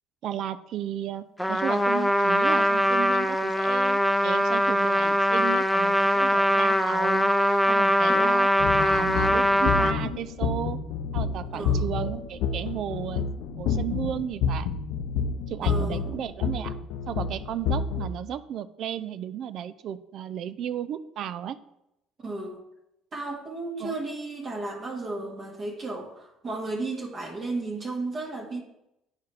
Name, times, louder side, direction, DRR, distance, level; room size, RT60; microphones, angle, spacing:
voice 1, 0.2-7.3 7.7-10.8 11.1-13.3 13.6-14.7 15.5-16.8 17.1-21.6 23.8-24.0, right 10 dB, 60° right, 14 dB, 0.4 m, -34 dB
Trumpet, 1.4-9.9, equal, ahead, 0.5 m, -22 dB
sound 1, 8.6-18.1, left 5 dB, 75° left, 0.6 m, -29 dB
voice 2, 11.5-11.9 15.6-16.0 22.2-22.6 23.1-28.6, right 2 dB, 40° right, -1 dB, 1.7 m, -34 dB
9.5 x 4.6 x 3.4 m, 0.86 s
cardioid pair, 105°, 0 cm